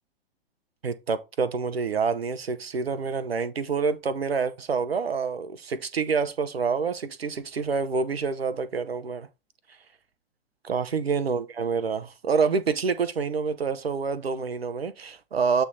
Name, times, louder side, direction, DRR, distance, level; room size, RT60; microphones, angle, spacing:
voice 1, 0.8-9.3 10.6-15.6, right 5 dB, 80° right, 0.9 m, -27 dB
8.2 x 3.3 x 4.0 m
figure-of-eight pair, 110°, 30 cm